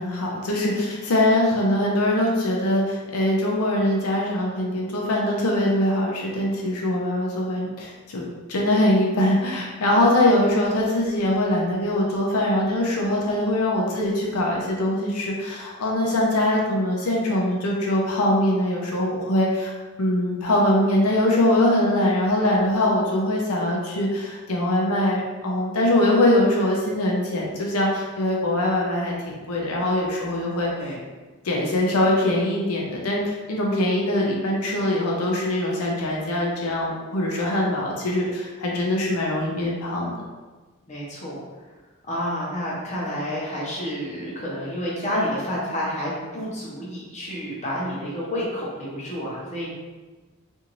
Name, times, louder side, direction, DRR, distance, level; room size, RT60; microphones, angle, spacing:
voice 1, 0.0-19.7 20.0-30.7 31.4-40.1, left 1 dB, 85° left, -2 dB, 0.6 m, -22 dB
voice 2, 40.9-41.4 42.0-49.7, equal, 30° left, -6 dB, 0.8 m, -29 dB
2.6 x 2.5 x 3.0 m, 1.3 s
head